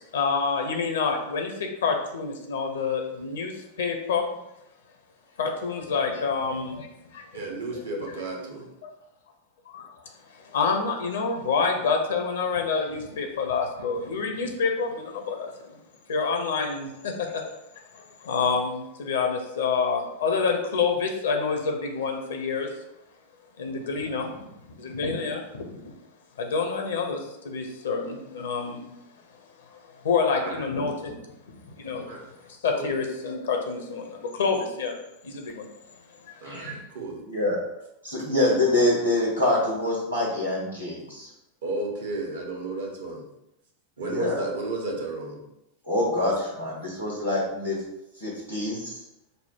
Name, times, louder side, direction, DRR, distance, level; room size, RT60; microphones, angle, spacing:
voice 1, 0.0-4.3 5.4-6.9 7.1-7.4 8.8-8.9 9.7-9.9 10.3-15.8 16.1-17.6 17.9-22.7 23.6-25.9 26.4-28.8 30.0-31.2 31.5-32.1 32.6-34.9 35.2-35.7 36.3-36.8, left 5 dB, 60° left, 3 dB, 0.8 m, -28 dB
voice 2, 7.3-8.7 30.4-30.7 32.0-32.2 32.7-32.9 36.4-37.2 41.6-43.3 44.0-45.4, right 2 dB, 65° right, 1 dB, 1.0 m, -33 dB
voice 3, 36.4-36.8 37.2-37.6 38.0-41.3 44.0-44.4 45.9-47.8 48.2-48.9, left 1 dB, 85° right, -5 dB, 1.4 m, -25 dB
5.4 x 2.2 x 4.4 m, 0.87 s
figure-of-eight pair, 90°, 0 cm